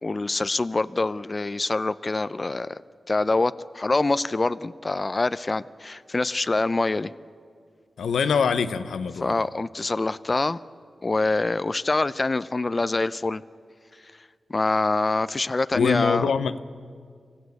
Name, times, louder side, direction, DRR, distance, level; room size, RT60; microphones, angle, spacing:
voice 1, 0.0-2.8 3.1-7.1 9.2-10.6 11.0-13.4 14.5-16.3, left 3 dB, 40° left, 15 dB, 0.5 m, -25 dB
voice 2, 8.0-9.4 15.7-16.6, left 6 dB, 90° left, 11 dB, 0.7 m, -24 dB
25.5 x 16.0 x 8.3 m, 2.1 s
cardioid pair, 45°, 0 cm